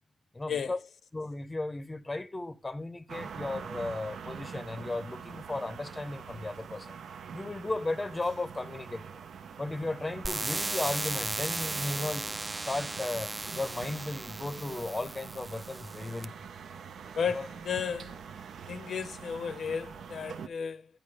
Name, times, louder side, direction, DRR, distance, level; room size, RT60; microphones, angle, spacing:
voice 1, 0.3-0.8 1.1-7.0 7.3-9.2 9.6-16.3 17.3-17.5, left 2 dB, 20° left, 0.6 m, -35 dB
sound 1, 3.1-20.5, right 7 dB, 80° right, 0.5 m, -45 dB
sound 2, 10.2-16.2, right 2 dB, 25° right, 0.4 m, -36 dB
voice 2, 17.2-18.2 18.7-20.9, left 6 dB, 70° left, 0.6 m, -34 dB
9.2 x 4.9 x 6.7 m
wide cardioid pair, 110°, 0 cm